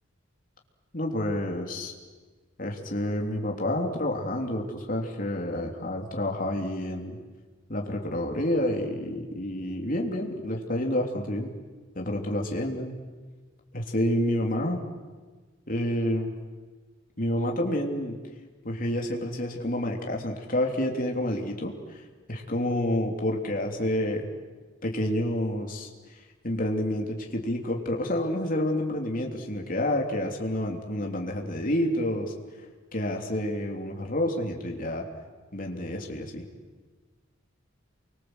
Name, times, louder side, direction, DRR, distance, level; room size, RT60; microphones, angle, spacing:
voice 1, 0.9-1.9 2.6-7.2 7.7-11.5 11.9-13.0 13.7-14.8 15.7-16.3 17.2-18.2 18.6-21.7 22.3-24.3 24.8-25.9 26.4-32.3 32.9-35.0 35.5-36.4, left 1 dB, 45° left, 1 dB, 3.4 m, -29 dB
29.5 x 24.0 x 8.1 m, 1.4 s
head